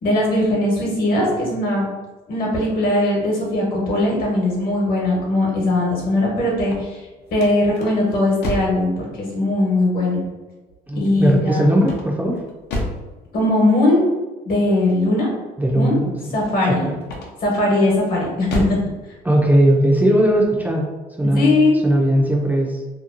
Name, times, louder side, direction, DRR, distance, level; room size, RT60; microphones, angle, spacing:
voice 1, 0.0-2.0 2.3-7.0 7.3-10.2 10.9-11.7 13.3-14.0 14.4-15.3 15.8-16.0 16.3-16.9 17.4-18.8 21.2-21.8, left 1 dB, 60° left, -3 dB, 1.1 m, -19 dB
sound 1, 6.5-8.9 11.8-13.1 17.0-17.6 18.1-18.9, left 1 dB, 75° left, 0.6 m, -29 dB
voice 2, 10.9-12.4 15.6-16.4 16.7-16.9 19.2-20.8 21.2-21.5 21.8-22.8, right 1 dB, 10° right, -2 dB, 0.4 m, -18 dB
2.8 x 2.3 x 2.4 m, 1.2 s
cardioid pair, 110°, 17 cm